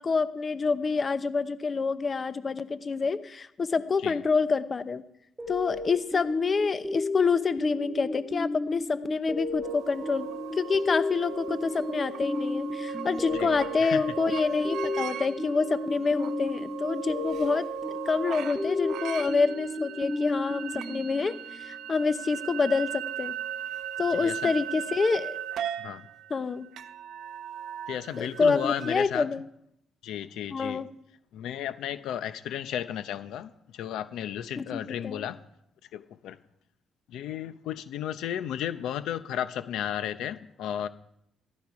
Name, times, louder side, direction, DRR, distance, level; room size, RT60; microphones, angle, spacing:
voice 1, 0.0-5.0 5.5-10.3 10.5-17.7 18.1-23.3 24.0-25.4 26.3-26.7 28.2-29.4 30.5-30.9 34.6-35.3, left 4 dB, 35° left, 13 dB, 0.8 m, -27 dB
sound 1, 5.4-21.7, left 2 dB, 15° right, 2.0 m, -34 dB
sound 2, 9.6-29.0, right 9 dB, 80° right, 0.9 m, -38 dB
voice 2, 13.3-14.0 24.2-24.5 25.8-26.1 27.9-29.3 30.0-30.8 31.3-35.4 35.9-36.4 37.1-40.9, left 10 dB, 85° left, 13 dB, 0.7 m, -34 dB
15.0 x 13.5 x 4.8 m, 0.74 s
cardioid pair, 90°, 0 cm